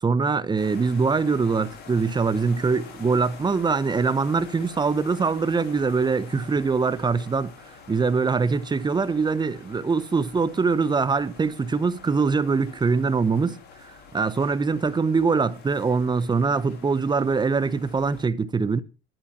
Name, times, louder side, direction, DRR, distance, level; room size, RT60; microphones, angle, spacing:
voice 1, 0.0-7.5 7.9-18.8, right 4 dB, 20° right, 1.2 m, -23 dB
sound 1, 0.6-18.2, left 6 dB, 55° left, 5.0 m, -47 dB
12.5 x 12.0 x 4.5 m
supercardioid pair, 100°, 20 cm